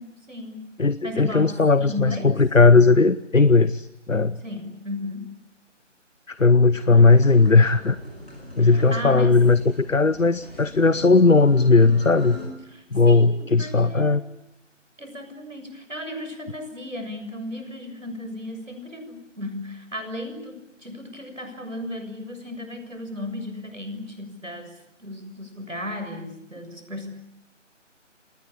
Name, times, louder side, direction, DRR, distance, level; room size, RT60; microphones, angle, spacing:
voice 1, 0.0-0.6 1.0-2.3 4.4-5.3 6.9-7.2 8.6-9.4 12.7-14.2 15.0-27.1, left 1 dB, 80° right, 7 dB, 7.0 m, -35 dB
voice 2, 0.8-4.4 6.3-8.0 8.6-12.4 12.9-14.2, left 3 dB, 90° left, 16 dB, 1.0 m, -17 dB
sound 1, 7.0-12.4, left 1 dB, ahead, 1.1 m, -41 dB
28.0 x 20.0 x 9.0 m, 0.83 s
figure-of-eight pair, 160°, 38 cm